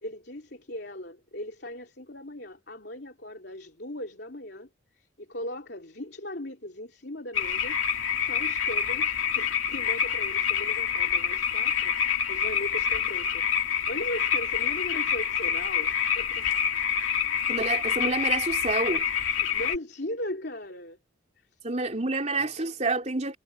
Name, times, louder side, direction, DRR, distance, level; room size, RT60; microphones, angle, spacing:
voice 1, 0.0-4.7 5.0-7.8 8.2-13.5 13.9-16.5 19.4-21.0, left 1 dB, 55° left, 3.1 m, -38 dB
sound 1, 7.3-19.8, left 8 dB, 85° left, 2.7 m, -27 dB
voice 2, 17.5-19.0 21.6-23.4, right 3 dB, 35° right, 3.6 m, -28 dB
head